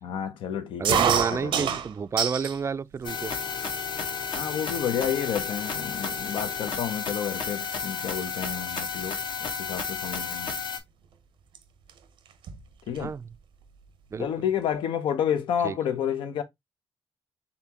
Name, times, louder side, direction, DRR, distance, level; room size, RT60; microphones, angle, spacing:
voice 1, 0.0-1.8 4.3-10.5 12.9-13.1 14.2-16.4, left 8 dB, 90° left, 0.7 m, -30 dB
voice 2, 0.8-3.3 13.0-13.2 14.1-14.3 15.6-15.8, right 5 dB, 35° right, 0.3 m, -30 dB
sound 1, 0.8-2.6 3.0-3.7 4.3-4.4 4.7-5.1 5.7-5.8 6.0-8.3 8.6-8.9 10.2-10.4 11.5-11.6 11.9-12.0 12.3-13.1, right 8 dB, 85° right, 0.7 m, -28 dB
sound 2, 3.0-10.8, left 5 dB, 70° left, 1.2 m, -32 dB
4.1 x 3.5 x 2.8 m
cardioid pair, 85°, 8 cm